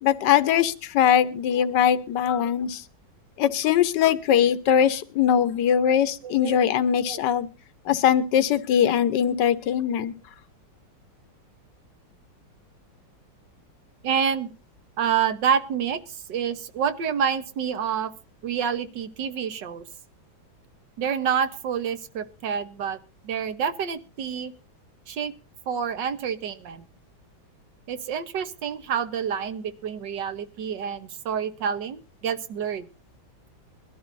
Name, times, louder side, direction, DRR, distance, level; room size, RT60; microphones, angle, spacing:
voice 1, 0.0-2.8 3.4-7.5 7.9-10.1, left 9 dB, 65° left, 12 dB, 1.5 m, -21 dB
voice 2, 5.9-6.6 7.1-7.2 14.0-14.5 15.0-18.1 18.4-19.9 21.0-23.0 23.2-24.5 25.1-25.3 25.7-26.9 27.9-32.9, right 7 dB, 65° right, 11 dB, 1.6 m, -28 dB
22.0 x 12.5 x 2.6 m, 0.34 s
omnidirectional pair, 2.2 m